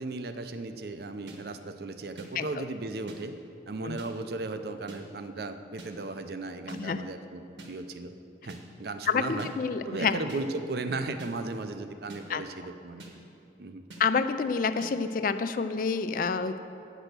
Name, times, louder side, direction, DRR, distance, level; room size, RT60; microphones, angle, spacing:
voice 1, 0.0-3.4 3.7-8.1 8.4-9.5 9.8-13.0 13.6-13.8, right 3 dB, 55° right, 9 dB, 0.5 m, -36 dB
sound 1, 1.3-1.4 2.2-2.3 3.1-3.2 4.0-4.1 4.9-5.0 5.8-5.9 6.7-6.8 7.6-7.7 8.5-8.6 9.4-9.5 10.3-10.4 11.2-11.3 12.1-12.2 13.0-13.1 13.9-14.0 14.8-14.9, right 2 dB, 80° right, 1.3 m, -45 dB
voice 2, 6.7-7.0 9.1-10.2 12.3-12.4 14.0-16.6, left 5 dB, 45° left, 11 dB, 0.3 m, -28 dB
8.8 x 6.1 x 6.7 m, 2.9 s
head